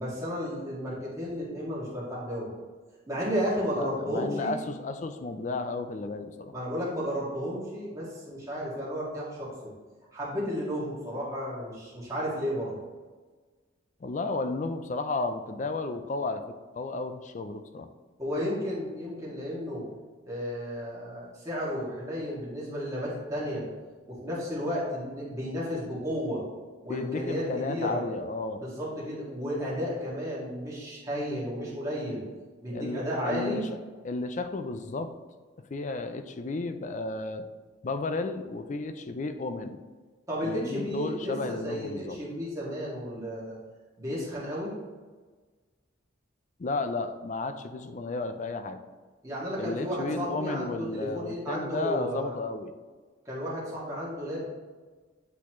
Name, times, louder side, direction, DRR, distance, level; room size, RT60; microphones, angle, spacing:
voice 1, 0.0-2.5 3.1-4.5 6.5-9.7 10.1-12.8 18.2-19.9 20.2-23.7 24.1-26.4 26.8-28.0 28.6-32.2 32.6-33.6 40.3-43.6 44.0-44.7 49.2-52.3 53.3-54.5, equal, 15° right, -7 dB, 1.9 m, -33 dB
voice 2, 3.8-6.5 14.0-16.4 16.8-17.9 26.9-28.6 32.7-33.6 34.0-35.1 35.7-37.5 37.8-39.8 40.4-42.2 46.6-48.8 49.6-52.7, left 3 dB, 40° left, 9 dB, 0.4 m, -33 dB
8.3 x 4.1 x 3.0 m, 1.4 s
head